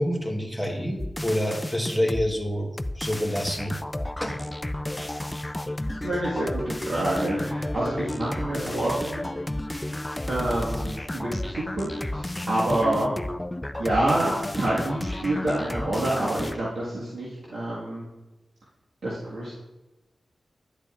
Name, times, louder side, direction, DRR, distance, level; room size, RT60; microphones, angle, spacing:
voice 1, 0.0-3.7 4.2-4.4, equal, 5° right, 2 dB, 1.4 m, -27 dB
sound 1, 1.0-2.3 2.8-16.6, left 1 dB, 15° left, 0.3 m, -32 dB
voice 2, 6.0-9.3 10.3-13.2 13.8-18.0 19.0-19.5, right 1 dB, 80° right, -7 dB, 1.7 m, -27 dB
10.0 x 7.9 x 2.5 m, 1.1 s
wide cardioid pair, 85°, 0 cm